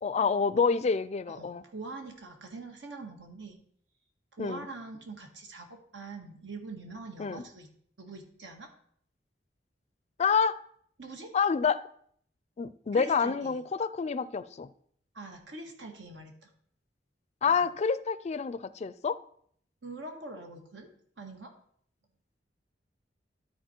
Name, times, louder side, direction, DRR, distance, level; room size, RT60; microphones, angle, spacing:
voice 1, 0.0-1.6 4.4-4.7 7.2-7.4 10.2-10.6 11.3-11.8 12.6-14.7 17.4-19.2, left 5 dB, 40° left, 0.4 m, -28 dB
voice 2, 1.3-3.6 4.3-7.7 8.0-8.7 11.0-11.3 12.9-13.6 15.1-16.5 17.5-17.6 19.8-20.9 21.2-21.5, right 3 dB, 90° right, 1.7 m, -44 dB
12.5 x 4.3 x 4.4 m
head